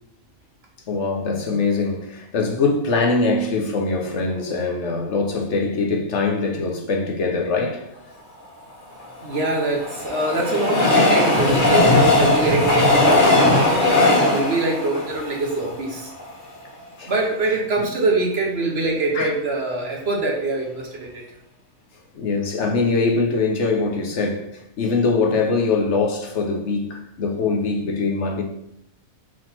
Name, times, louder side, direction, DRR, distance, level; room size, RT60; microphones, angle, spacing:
voice 1, 0.9-7.9 17.0-17.1 19.1-19.3 22.1-28.4, left 3 dB, 60° left, 1.0 m, -22 dB
Train, 9.0-16.3 16.8-16.9 17.1-17.2, left 2 dB, 35° left, 1.8 m, -18 dB
voice 2, 9.2-16.1 17.0-21.2, right 2 dB, 50° right, 1.3 m, -24 dB
4.8 x 3.8 x 5.7 m
omnidirectional pair, 1.4 m